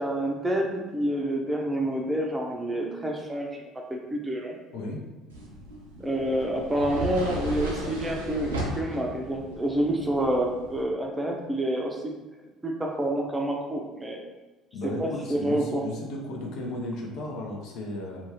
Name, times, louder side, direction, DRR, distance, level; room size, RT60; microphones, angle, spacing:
voice 1, 0.0-4.5 6.0-12.0 12.6-14.2 14.8-15.8, right 1 dB, 15° right, 0 dB, 0.6 m, -28 dB
sound 1, 5.3-10.8, right 1 dB, 80° right, 0.4 m, -35 dB
voice 2, 14.7-18.3, left 1 dB, 60° left, 0 dB, 0.5 m, -35 dB
2.6 x 2.3 x 3.0 m, 1.2 s
figure-of-eight pair, 60°, 0 cm